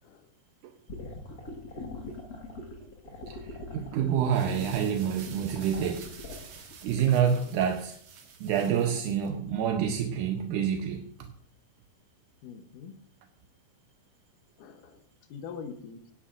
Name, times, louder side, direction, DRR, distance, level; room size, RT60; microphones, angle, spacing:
voice 1, 0.0-0.3 3.7-4.0 7.4-7.6 12.4-13.0 14.6-15.0 15.3-16.1, left 6 dB, 85° left, 7 dB, 2.5 m, -44 dB
sound 1, 0.9-7.4, left 2 dB, 35° left, 1.7 m, -42 dB
voice 2, 3.3-6.1 6.8-8.0 8.4-11.3, right 8 dB, 80° right, 4 dB, 2.2 m, -27 dB
sound 2, 4.1-9.3, right 6 dB, 60° right, 2.5 m, -49 dB
18.0 x 9.9 x 2.5 m, 0.62 s
omnidirectional pair, 3.6 m